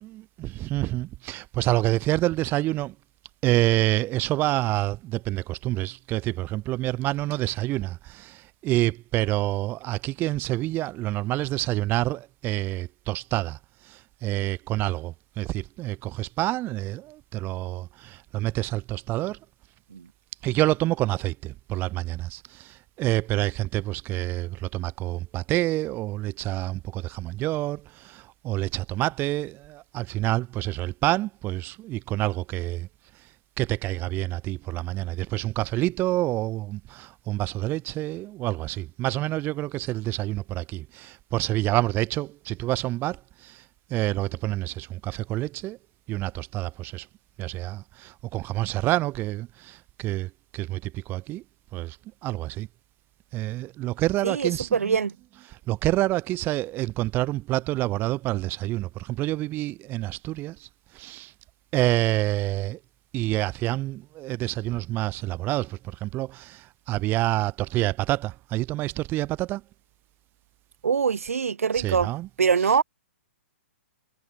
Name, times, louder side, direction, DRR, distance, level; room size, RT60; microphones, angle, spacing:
voice 1, 0.0-2.9 3.4-13.6 13.8-19.4 20.4-32.9 33.6-43.6 43.9-45.8 46.1-47.1 47.4-51.4 51.7-52.0 52.2-52.7 53.3-55.0 55.5-60.7 60.9-61.3 61.7-62.8 63.1-69.6 71.7-72.3, right 17 dB, 30° right, 2.2 m, -28 dB
voice 2, 54.2-55.1 70.8-72.1 72.4-72.8, right 6 dB, 80° right, 2.5 m, -23 dB
hypercardioid pair, 130°, 8 cm